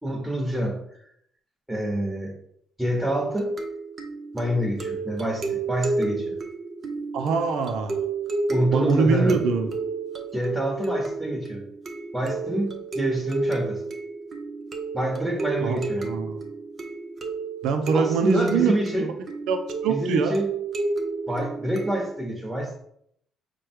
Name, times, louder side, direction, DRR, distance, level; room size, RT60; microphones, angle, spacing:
voice 1, 0.0-1.1 1.7-2.3 2.8-3.5 4.3-6.3 8.5-9.4 10.3-11.6 12.1-12.7 12.9-13.8 14.9-16.1 17.9-19.1 19.9-20.5 21.3-22.8, right 1 dB, 5° right, -2 dB, 1.2 m, -27 dB
sound 1, 3.0-22.2, right 3 dB, 40° right, 0.7 m, -31 dB
voice 2, 7.1-7.9 8.7-9.7 15.6-16.4 17.6-19.1 19.5-20.4, right 5 dB, 80° right, 6 dB, 0.5 m, -24 dB
4.7 x 2.2 x 4.5 m, 0.71 s
cardioid pair, 85°, 0 cm